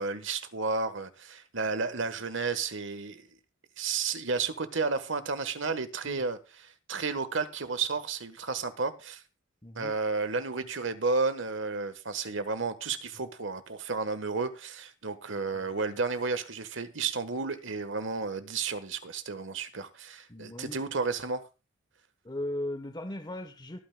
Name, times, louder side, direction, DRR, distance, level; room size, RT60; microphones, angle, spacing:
voice 1, 0.0-3.3 3.8-9.2 9.7-21.4, right 4 dB, 60° right, 1.3 m, -32 dB
voice 2, 9.6-9.9 20.3-20.8 22.2-23.8, left 1 dB, 20° left, 1.0 m, -37 dB
23.5 x 9.3 x 2.3 m
head